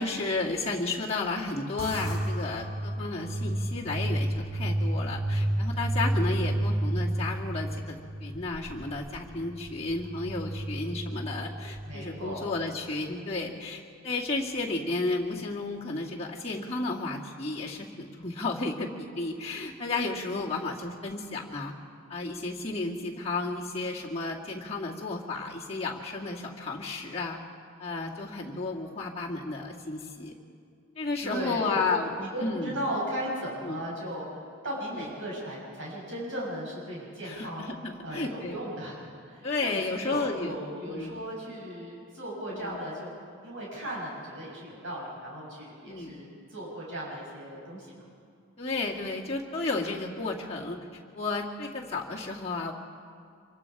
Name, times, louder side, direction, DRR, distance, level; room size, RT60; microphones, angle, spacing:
voice 1, 0.0-21.7 22.1-27.4 27.8-30.3 31.0-32.1 32.4-32.8 33.6-33.8 34.9-35.1 37.2-38.6 39.4-40.5 40.9-41.3 42.5-42.8 45.8-46.1 48.6-50.8 51.1-52.7, left 3 dB, 30° left, -4 dB, 2.1 m, -33 dB
sound 1, 1.8-12.4, right 1 dB, 30° right, 2.3 m, -31 dB
voice 2, 11.8-12.4 31.2-31.9 32.2-37.7 38.0-39.0 39.3-43.1 43.4-47.9, equal, 65° right, -5 dB, 7.3 m, -36 dB
25.5 x 24.0 x 4.9 m, 2.3 s
head